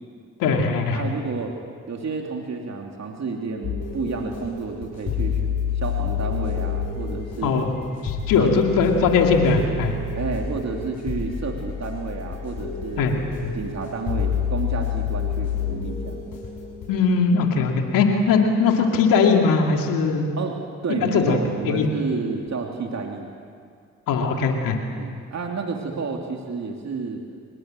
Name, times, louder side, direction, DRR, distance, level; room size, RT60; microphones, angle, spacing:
voice 1, 0.4-1.0 7.4-7.8 8.0-10.0 13.0-13.5 16.9-20.3 21.0-21.4 21.6-21.9 24.1-24.8, left 5 dB, 90° left, 2 dB, 2.5 m, -20 dB
voice 2, 0.9-1.5 1.9-7.6 8.4-8.6 10.2-13.1 13.5-16.2 20.4-23.3 25.0-27.2, right 4 dB, 55° right, 2 dB, 2.9 m, -30 dB
sound 1, 3.6-16.9, left 6 dB, 70° left, 7.0 m, -28 dB
25.0 x 20.5 x 7.7 m, 2.2 s
supercardioid pair, 50°, 32 cm